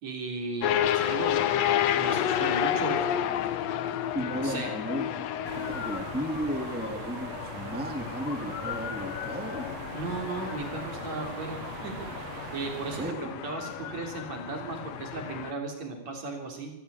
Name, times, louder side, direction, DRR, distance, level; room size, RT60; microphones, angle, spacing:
voice 1, 0.0-3.1 4.3-4.7 9.9-12.1 12.5-16.7, right 3 dB, 50° right, 3 dB, 4.8 m, -36 dB
sound 1, 0.6-15.5, left 11 dB, 75° left, 1.5 m, -31 dB
voice 2, 4.1-9.7 13.0-13.3, equal, 5° right, 4 dB, 1.4 m, -34 dB
sound 2, 5.4-13.1, right 10 dB, 70° right, 1.5 m, -42 dB
23.5 x 15.0 x 8.4 m, 0.95 s
omnidirectional pair, 4.2 m